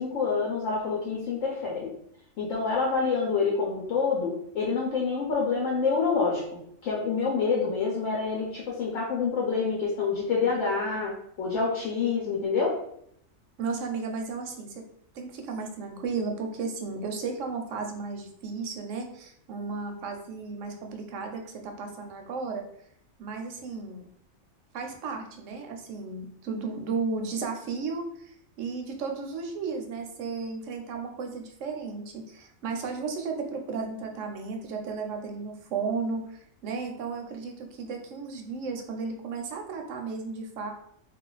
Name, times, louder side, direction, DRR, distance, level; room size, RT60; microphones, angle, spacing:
voice 1, 0.0-1.9 2.4-12.8, left 5 dB, 70° left, -3 dB, 1.0 m, -27 dB
voice 2, 13.6-14.8 15.1-22.7 23.2-24.0 24.7-40.7, right 4 dB, 75° right, 3 dB, 0.9 m, -34 dB
2.4 x 2.3 x 3.8 m, 0.70 s
omnidirectional pair, 1.4 m